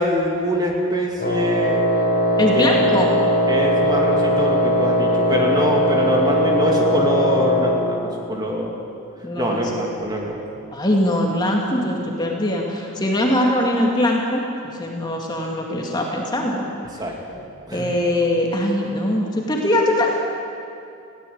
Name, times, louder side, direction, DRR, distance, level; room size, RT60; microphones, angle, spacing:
voice 1, 0.0-1.8 2.5-2.7 3.5-8.7 9.4-10.4 17.0-17.4 17.7-17.8, equal, 20° right, 0 dB, 2.6 m, -24 dB
Wind instrument woodwind instrument, 1.2-7.8, equal, 40° left, 4.1 m, -19 dB
voice 2, 2.4-3.2 9.2-9.6 10.7-16.7 17.7-20.1, left 1 dB, 20° left, 0 dB, 2.1 m, -21 dB
20.5 x 16.5 x 8.7 m, 2.5 s
head